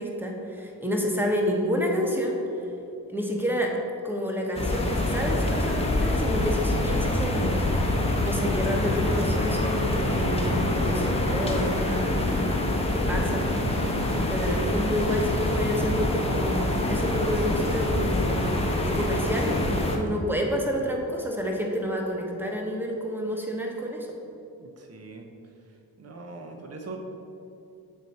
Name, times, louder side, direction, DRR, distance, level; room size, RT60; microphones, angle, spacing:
voice 1, 0.0-2.6 3.1-3.8 4.0-7.6 8.2-18.5 18.9-24.1, equal, 5° right, 0 dB, 1.2 m, -29 dB
sound 1, 4.5-20.0, left 1 dB, 15° left, 0.9 m, -25 dB
voice 2, 24.6-25.3 26.0-27.0, right 3 dB, 35° right, 3 dB, 0.8 m, -41 dB
8.2 x 3.2 x 4.1 m, 2.7 s
supercardioid pair, 45°, 42 cm